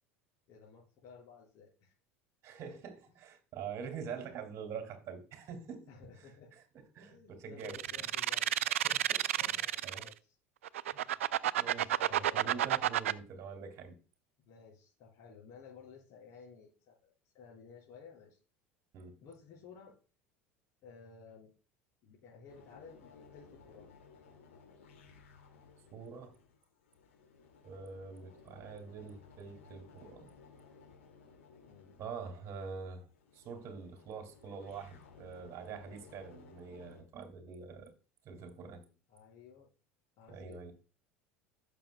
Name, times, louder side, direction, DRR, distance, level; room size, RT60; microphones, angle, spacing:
voice 1, 0.5-1.9 3.1-3.2 5.9-6.5 7.1-8.5 9.4-10.3 12.0-12.7 14.4-18.4 19.2-20.0 20.8-21.5 22.0-23.9 31.6-32.0 39.1-39.7 40.2-40.7, left 6 dB, 50° left, 4.5 m, -55 dB
voice 2, 2.4-5.9 6.2-6.6 6.9-7.8 8.6-10.1 10.9-11.0 11.6-14.0 18.9-19.2 25.9-26.4 27.6-30.3 32.0-33.1 33.3-37.9 38.2-38.9 40.3-40.7, right 6 dB, 40° right, 2.3 m, -45 dB
sound 1, 7.6-10.1 10.6-13.1, right 12 dB, 75° right, 0.3 m, -30 dB
sound 2, 22.5-37.0, left 5 dB, 75° left, 2.2 m, -59 dB
15.5 x 6.9 x 2.2 m
figure-of-eight pair, 70°, 7 cm